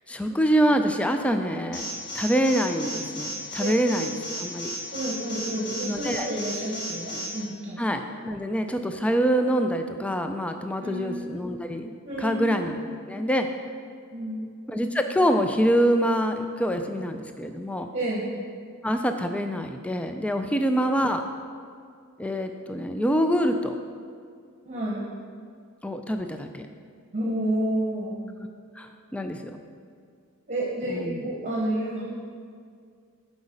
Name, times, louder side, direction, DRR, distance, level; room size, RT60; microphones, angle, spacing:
voice 1, 0.1-1.8 2.1-4.7 5.9-6.3 7.8-11.9 12.2-12.8 13.1-13.5 14.7-17.9 18.8-21.2 22.2-23.7 25.8-26.6 28.8-29.6 30.9-31.2, equal, 5° left, 6 dB, 0.3 m, -25 dB
Alarm, 1.7-7.3, equal, 75° left, 1.8 m, -34 dB
voice 2, 4.9-7.8 10.8-11.3 12.0-12.6 14.1-14.5 17.9-18.2 24.6-25.1 27.1-28.1 30.5-32.0, right 1 dB, 35° right, -4 dB, 1.1 m, -30 dB
8.0 x 4.8 x 5.2 m, 2.2 s
head